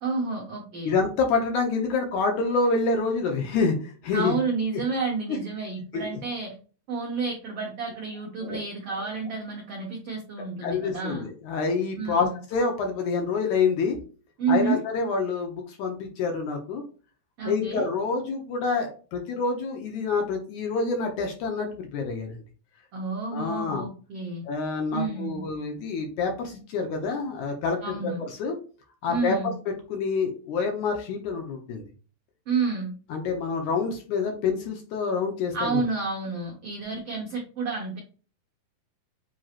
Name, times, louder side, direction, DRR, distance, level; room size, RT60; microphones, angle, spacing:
voice 1, 0.0-1.0 4.1-6.5 6.9-11.3 12.0-12.4 14.4-14.8 17.4-17.9 22.9-24.4 24.9-25.4 27.8-28.2 29.1-29.5 32.5-32.9 35.5-38.0, right 4 dB, 90° right, 0 dB, 1.3 m, -30 dB
voice 2, 0.8-4.4 5.3-5.4 5.9-6.1 8.4-8.6 8.9-9.0 10.6-14.0 14.5-16.8 17.4-22.4 23.3-23.9 24.5-28.1 28.4-28.6 29.0-29.5 29.9-31.8 33.1-35.8, left 4 dB, 70° left, 3 dB, 1.9 m, -27 dB
7.5 x 2.9 x 2.4 m, 0.38 s
omnidirectional pair, 4.1 m